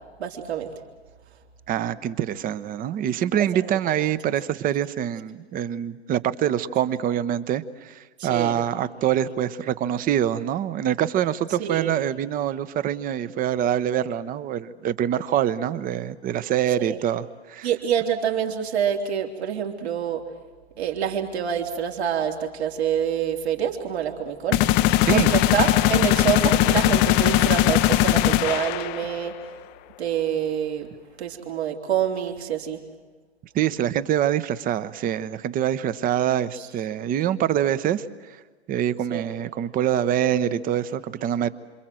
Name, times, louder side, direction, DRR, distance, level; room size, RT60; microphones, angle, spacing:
voice 1, 0.2-0.7 3.4-3.8 8.2-8.6 11.6-11.9 16.8-17.0 17.6-20.2 20.8-29.3 30.0-30.9 31.2-32.8 36.5-36.7 39.1-39.3, right 8 dB, 65° right, 2 dB, 3.5 m, -27 dB
voice 2, 1.7-17.7 25.1-25.3 33.5-38.4 38.7-41.5, right 10 dB, 25° right, 15 dB, 1.0 m, -25 dB
sound 1, 24.5-29.3, left 15 dB, 30° left, 0.7 m, -20 dB
27.5 x 27.0 x 7.7 m, 1.4 s
figure-of-eight pair, 110°, 34 cm